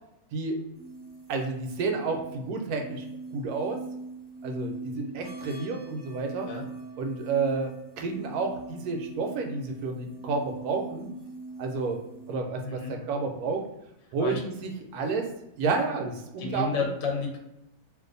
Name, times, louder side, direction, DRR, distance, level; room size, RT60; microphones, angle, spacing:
sound 1, 0.7-12.4, right 3 dB, 50° right, 0.5 m, -42 dB
voice 1, 1.3-3.0 3.3-3.8 4.4-6.5 7.0-11.1 11.6-12.0 12.3-13.7 14.1-15.3 15.6-16.7, right 4 dB, 85° right, 3 dB, 1.1 m, -30 dB
voice 2, 12.6-13.0 14.2-14.4 16.4-17.4, left 4 dB, 55° left, 1 dB, 0.9 m, -31 dB
2.6 x 2.4 x 3.8 m, 0.86 s
omnidirectional pair, 1.6 m